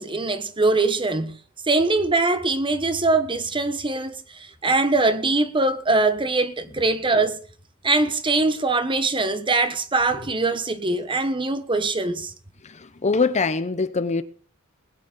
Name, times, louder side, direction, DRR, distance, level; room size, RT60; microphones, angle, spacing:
voice 1, 0.0-1.4 1.7-7.4 7.8-12.3, right 3 dB, 25° right, 1.2 m, -22 dB
voice 2, 12.6-14.2, left 4 dB, 35° left, 0.7 m, -23 dB
21.0 x 9.3 x 3.8 m
head